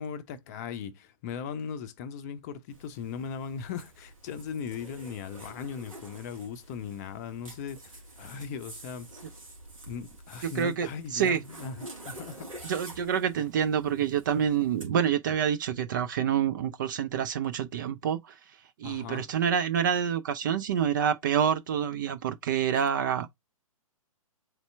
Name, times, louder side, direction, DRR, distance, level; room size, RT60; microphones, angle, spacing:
voice 1, 0.0-9.1 9.9-12.5 18.8-19.3, left 6 dB, 30° left, 0.6 m, -38 dB
Zipper (clothing), 2.7-14.9, right 1 dB, 70° right, 2.0 m, -48 dB
voice 2, 10.4-11.4 12.6-18.4 18.8-23.3, right 8 dB, 35° right, 0.4 m, -27 dB
4.2 x 3.2 x 3.3 m
figure-of-eight pair, 120°, 18 cm